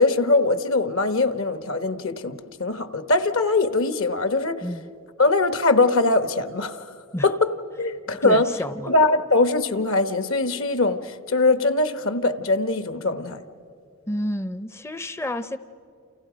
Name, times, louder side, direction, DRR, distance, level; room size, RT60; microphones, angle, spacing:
voice 1, 0.0-4.7 5.2-6.9 7.2-7.5 7.8-8.5 8.9-13.4, left 3 dB, 70° left, 11 dB, 1.2 m, -22 dB
voice 2, 8.2-8.9 14.1-15.6, left 1 dB, 10° left, 12 dB, 0.5 m, -30 dB
29.0 x 29.0 x 5.1 m, 2.6 s
head